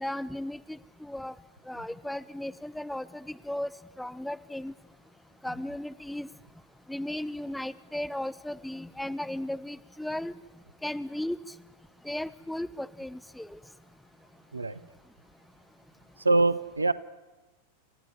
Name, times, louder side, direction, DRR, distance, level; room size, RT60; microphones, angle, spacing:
voice 1, 0.0-1.3 1.7-3.7 4.0-4.7 5.4-6.3 6.9-10.3 10.8-11.4 12.0-13.6, left 1 dB, 5° left, 13 dB, 0.8 m, -35 dB
voice 2, 16.2-16.9, right 2 dB, 80° right, 16 dB, 0.9 m, -24 dB
29.5 x 14.0 x 9.8 m, 1.2 s
figure-of-eight pair, 90°, 0 cm